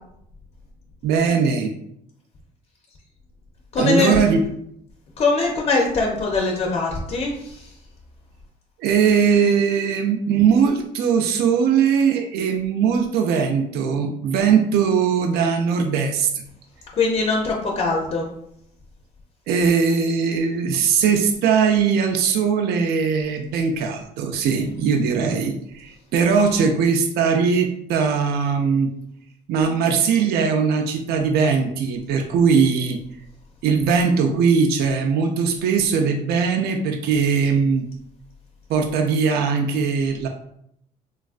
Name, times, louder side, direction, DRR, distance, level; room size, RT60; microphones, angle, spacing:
voice 1, 1.0-1.7 3.8-4.4 8.8-16.4 19.5-28.9 29.5-33.0 33.6-37.8 38.7-40.3, right 6 dB, 70° right, 4 dB, 0.4 m, -20 dB
voice 2, 3.7-4.2 5.2-7.7 17.0-18.3 24.6-24.9, left 3 dB, 40° left, -1 dB, 0.5 m, -22 dB
3.1 x 2.3 x 2.4 m, 0.74 s
cardioid pair, 110°, 17 cm